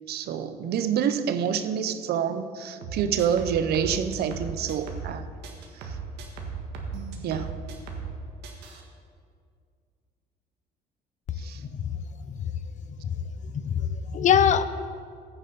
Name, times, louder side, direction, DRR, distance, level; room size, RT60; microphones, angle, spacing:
voice 1, 0.1-5.3 5.8-6.0 7.2-7.6 11.4-11.6, right 8 dB, 70° right, 10 dB, 0.8 m, -27 dB
sound 1, 2.8-5.2 5.4-8.2 8.4-8.8, right 5 dB, 90° right, 1.6 m, -36 dB
voice 2, 13.2-14.6, left 8 dB, 45° left, 13 dB, 0.6 m, -24 dB
15.0 x 8.9 x 4.1 m, 2.2 s
cardioid pair, 110°, 17 cm